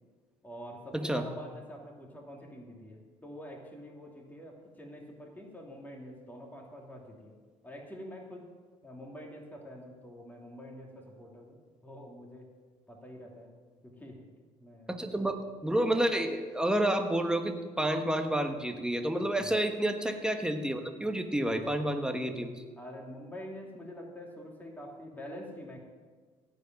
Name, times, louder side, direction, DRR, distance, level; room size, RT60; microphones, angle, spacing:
voice 1, 0.4-7.3 7.6-8.5 8.8-12.5 12.9-13.5 13.8-14.2 14.6-15.2 19.4-19.6 22.8-25.8, equal, 10° left, -1 dB, 2.8 m, -46 dB
voice 2, 14.9-22.6, right 1 dB, 5° right, 5 dB, 1.5 m, -30 dB
16.0 x 5.3 x 9.2 m, 1.5 s
cardioid pair, 85°, 14 cm